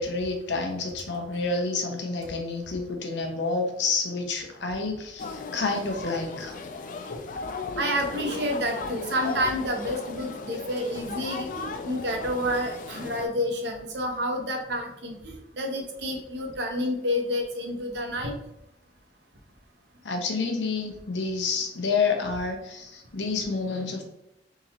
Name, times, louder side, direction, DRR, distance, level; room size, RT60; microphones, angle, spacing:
voice 1, 0.0-6.6 7.1-7.4 20.0-24.0, left 4 dB, 85° left, 3 dB, 0.7 m, -29 dB
sound 1, 5.2-13.3, left 4 dB, 45° left, 0.3 m, -36 dB
voice 2, 7.8-15.2 15.6-18.4, equal, 75° right, 2 dB, 0.8 m, -29 dB
3.7 x 2.9 x 2.9 m, 0.87 s
head